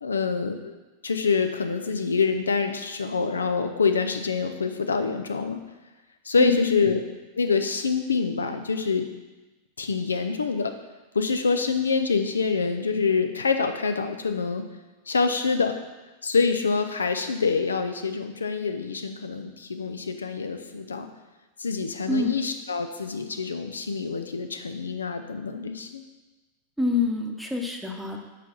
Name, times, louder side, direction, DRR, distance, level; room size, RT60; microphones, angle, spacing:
voice 1, 0.0-0.7 1.0-5.6 6.2-7.0 7.4-9.1 9.8-10.7 11.1-14.6 15.1-15.8 16.2-21.1 21.6-26.0, left 4 dB, 75° left, 7 dB, 0.6 m, -26 dB
voice 2, 6.4-6.9 22.1-22.3 26.8-28.2, left 4 dB, ahead, 1 dB, 1.0 m, -26 dB
5.9 x 5.1 x 6.0 m, 1.2 s
figure-of-eight pair, 90°, 0 cm